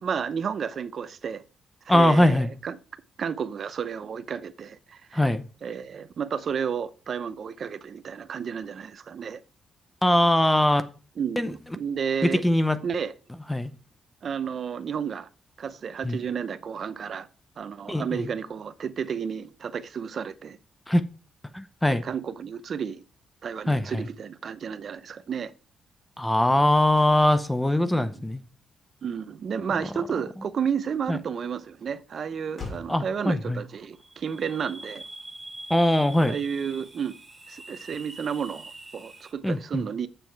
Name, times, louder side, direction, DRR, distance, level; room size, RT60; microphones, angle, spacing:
voice 1, 0.0-1.4 1.9-2.8 3.2-5.3 5.6-9.4 11.2-12.5 12.8-13.1 14.2-15.3 15.6-17.3 17.6-20.6 22.0-23.0 23.4-25.5 27.9-28.1 29.0-35.0 36.2-37.2 37.5-40.1, right 7 dB, 50° right, 0.6 m, -32 dB
voice 2, 1.9-2.5 5.1-5.4 10.0-10.8 11.4-11.5 12.2-12.8 13.5-13.7 16.0-16.2 17.9-18.3 20.9-21.0 21.5-22.0 23.7-24.1 26.2-28.4 31.1-31.2 32.9-33.6 35.7-36.4 39.4-39.8, left 1 dB, 5° left, 0.7 m, -22 dB
Motor vehicle (road), 31.6-37.1, left 4 dB, 40° left, 2.7 m, -49 dB
sound 1, 34.0-39.3, right 2 dB, 10° right, 1.8 m, -44 dB
7.8 x 6.9 x 4.6 m
cardioid pair, 130°, 0 cm